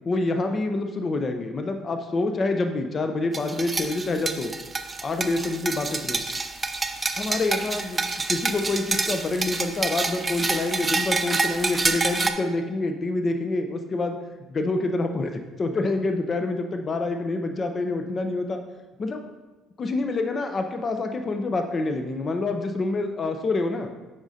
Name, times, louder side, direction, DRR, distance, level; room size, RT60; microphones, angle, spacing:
voice 1, 0.1-4.5 5.0-6.2 7.2-8.0 8.3-14.2 14.5-18.6 19.0-19.2 19.8-23.9, left 2 dB, 40° left, 6 dB, 0.5 m, -27 dB
sound 1, 3.3-12.3, right 3 dB, 25° right, 0.5 m, -27 dB
8.6 x 5.1 x 2.7 m, 1.2 s
cardioid pair, 90°, 0 cm